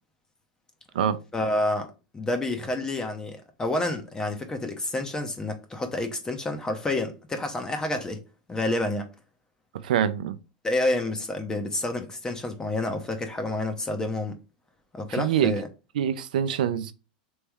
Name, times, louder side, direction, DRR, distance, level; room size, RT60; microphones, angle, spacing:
voice 1, 1.3-8.2 8.5-9.1 10.6-14.4 14.9-15.7, left 2 dB, 15° left, 0.7 m, -29 dB
voice 2, 9.8-10.4 15.1-15.5 15.9-16.9, right 9 dB, 75° right, 0.5 m, -25 dB
3.4 x 3.1 x 3.4 m
hypercardioid pair, 110°, 5 cm